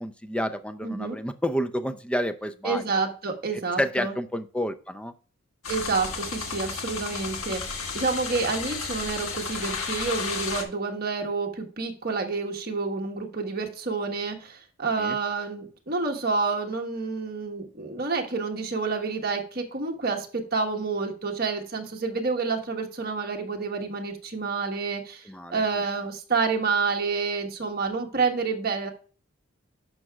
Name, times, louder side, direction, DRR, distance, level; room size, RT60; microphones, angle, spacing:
voice 1, 0.0-2.8 3.8-5.1 15.0-15.2 25.3-25.6, equal, 5° left, 10 dB, 0.4 m, -29 dB
voice 2, 0.8-1.2 2.6-4.1 5.7-25.3 25.5-28.9, right 4 dB, 45° right, 2 dB, 1.3 m, -29 dB
sound 1, 5.6-10.6, left 5 dB, 75° left, 1.5 m, -33 dB
11.5 x 6.0 x 2.3 m, 0.40 s
head